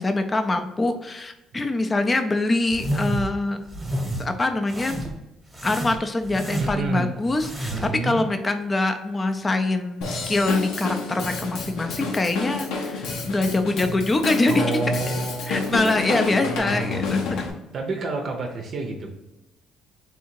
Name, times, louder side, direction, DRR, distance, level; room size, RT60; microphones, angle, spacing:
voice 1, 0.0-3.6 4.2-5.0 5.6-14.6 15.5-17.4, left 2 dB, 20° left, 7 dB, 0.5 m, -24 dB
sound 1, 2.7-3.3 3.7-4.2 4.7-5.2 5.5-6.9 7.3-8.0, right 1 dB, 10° right, 1.0 m, -30 dB
voice 2, 6.6-7.2 7.7-8.2 14.5-16.1 17.7-19.1, right 3 dB, 45° right, 2 dB, 0.6 m, -28 dB
Drum kit / Drum, 10.0-17.5, left 3 dB, 85° left, 0.8 m, -29 dB
3.6 x 2.7 x 4.5 m, 0.97 s
cardioid pair, 120°, 0 cm